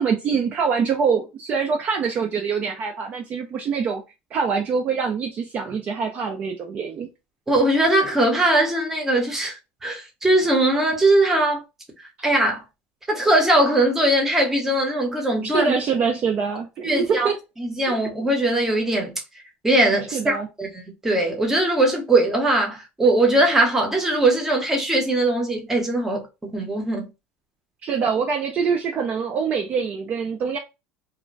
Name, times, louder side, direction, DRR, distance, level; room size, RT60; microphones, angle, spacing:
voice 1, 0.0-4.0 4.3-7.1 15.4-17.3 20.1-20.5 27.8-30.6, right 6 dB, 35° right, 0.4 m, -24 dB
voice 2, 7.5-11.6 12.2-12.6 13.1-15.7 16.8-17.3 17.6-19.1 19.6-27.1, right 1 dB, 10° right, 0.8 m, -20 dB
2.5 x 2.1 x 3.1 m
cardioid pair, 145°, 4 cm